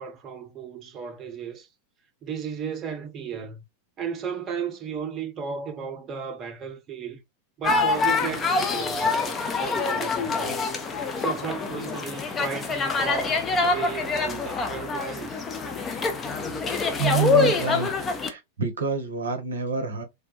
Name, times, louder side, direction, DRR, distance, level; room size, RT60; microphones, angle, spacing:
voice 1, 0.0-1.7 2.2-3.6 4.0-7.2 7.6-10.6 11.2-15.4, right 7 dB, 30° right, 0.6 m, -34 dB
sound 1, 7.6-18.3, left 4 dB, 20° left, 0.6 m, -25 dB
voice 2, 17.0-17.9 18.2-20.0, right 6 dB, 70° right, 0.6 m, -27 dB
3.3 x 2.2 x 2.8 m
figure-of-eight pair, 90°, 0 cm